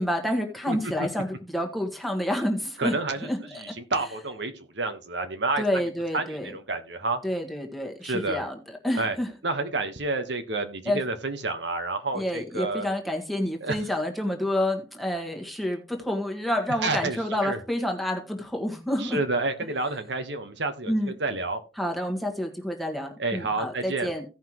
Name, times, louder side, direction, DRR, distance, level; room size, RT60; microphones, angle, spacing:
voice 1, 0.0-2.9 3.2-3.8 5.6-6.5 7.2-8.6 8.8-9.3 10.9-11.0 12.1-19.2 20.9-21.1 21.8-24.2, left 1 dB, ahead, 1.5 m, -29 dB
voice 2, 2.8-5.8 6.1-7.2 8.0-8.4 9.0-9.2 9.4-12.9 13.6-13.8 16.8-17.2 17.4-17.6 19.0-21.6 23.2-24.1, right 3 dB, 65° right, 1.2 m, -29 dB
16.0 x 5.8 x 3.0 m
head